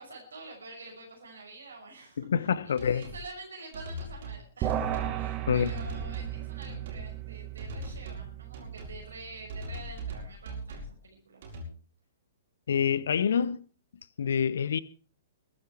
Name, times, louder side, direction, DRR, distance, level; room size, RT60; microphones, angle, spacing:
voice 1, 0.0-11.4, right 3 dB, 70° right, 5.9 m, -47 dB
voice 2, 2.2-3.1 5.5-5.7 12.7-13.6 14.2-14.8, left 7 dB, 60° left, 1.0 m, -26 dB
sound 1, 2.8-3.2 3.7-4.4 4.7-5.2 5.7-6.3 6.6-7.1 7.6-8.3 8.5-9.0 9.5-10.9 11.4-11.6, right 1 dB, 50° right, 6.6 m, -40 dB
sound 2, 4.6-10.1, right 12 dB, 30° right, 2.0 m, -36 dB
22.0 x 11.5 x 4.6 m
figure-of-eight pair, 115°, 0 cm